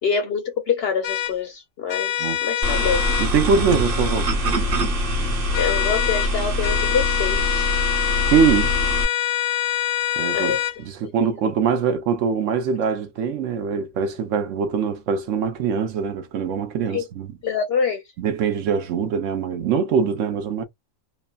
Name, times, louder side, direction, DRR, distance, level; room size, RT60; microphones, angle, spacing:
voice 1, 0.0-3.0 5.6-7.7 9.7-9.8 10.3-10.6 11.0-11.3 16.9-17.1 17.4-18.0, left 6 dB, 60° left, 0.7 m, -25 dB
sound 1, 1.0-1.3 1.9-3.3 5.5-6.3 6.6-10.8, left 11 dB, 85° left, 1.0 m, -25 dB
sound 2, 2.6-9.1, equal, 45° right, 1.1 m, -23 dB
voice 2, 3.2-4.3 7.9-8.8 10.2-10.6 10.8-17.3 18.2-20.6, right 6 dB, 70° right, 1.0 m, -23 dB
3.1 x 2.1 x 2.3 m
omnidirectional pair, 1.4 m